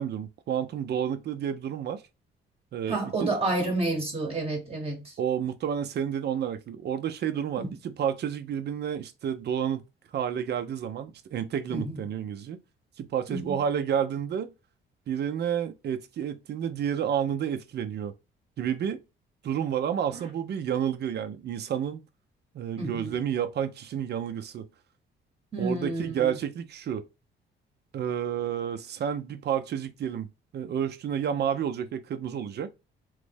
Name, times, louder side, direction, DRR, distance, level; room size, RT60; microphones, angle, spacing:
voice 1, 0.0-2.0 2.7-3.3 5.2-9.8 10.1-12.6 13.0-14.5 15.1-18.1 18.6-19.0 19.4-22.0 22.5-24.7 25.6-27.1 27.9-30.3 30.5-32.7, right 8 dB, 55° right, 0.5 m, -30 dB
voice 2, 2.9-5.1 7.6-7.7 11.7-12.0 13.3-13.5 22.8-23.1 25.5-26.3, right 2 dB, 30° right, 1.0 m, -30 dB
3.1 x 2.1 x 3.3 m
cardioid pair, 90°, 20 cm